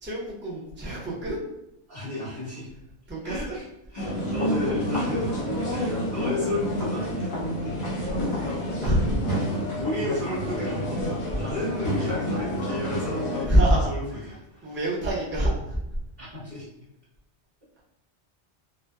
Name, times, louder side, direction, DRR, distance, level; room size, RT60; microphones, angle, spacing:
voice 1, 0.0-1.4 3.1-3.6 8.8-9.1 11.3-11.4 13.1-14.3 14.6-15.8, right 1 dB, 15° right, -6 dB, 0.4 m, -25 dB
voice 2, 1.9-2.7 3.2-3.6 3.9-5.4 5.7-7.3 8.4-8.6 9.8-11.1 11.4-14.8 16.2-16.7, left 2 dB, 45° right, -13 dB, 1.3 m, -33 dB
sound 1, 4.0-13.4, equal, 50° left, 0.7 m, -28 dB
2.6 x 2.1 x 2.2 m, 0.87 s
omnidirectional pair, 1.2 m